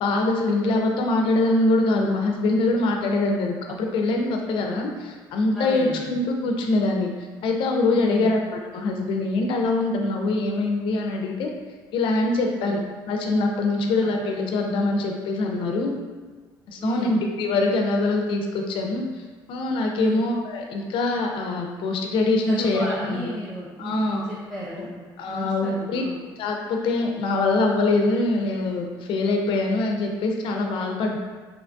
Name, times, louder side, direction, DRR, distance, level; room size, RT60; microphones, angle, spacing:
voice 1, 0.0-7.1 7.4-11.5 11.9-12.8 13.1-16.0 16.7-19.0 19.5-23.3 23.8-24.2 24.8-24.9 25.2-26.0 26.4-31.2, left 2 dB, 70° left, 1 dB, 0.4 m, -23 dB
voice 2, 5.5-6.1 7.9-8.3 12.6-12.9 14.0-14.1 16.8-17.2 20.0-20.2 22.5-25.0 25.2-26.2, equal, ahead, -8 dB, 0.4 m, -34 dB
2.8 x 2.2 x 2.5 m, 1.4 s
cardioid pair, 105°, 9 cm